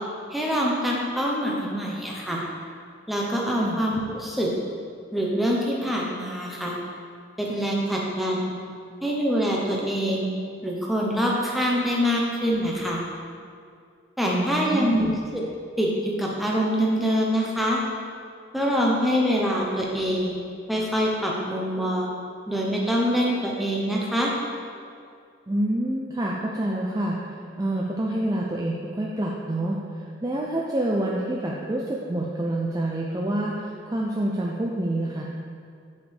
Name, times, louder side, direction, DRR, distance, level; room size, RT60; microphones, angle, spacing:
voice 1, 0.3-2.4 3.1-4.5 5.1-6.8 7.4-8.5 9.0-10.3 10.6-13.0 14.2-15.1 15.3-15.4 15.8-17.8 18.5-20.3 20.7-22.1 22.5-24.3, equal, ahead, -3 dB, 0.8 m, -25 dB
voice 2, 14.2-15.1 25.5-35.2, right 1 dB, 20° right, -3 dB, 0.4 m, -27 dB
9.4 x 5.1 x 3.4 m, 2.3 s
head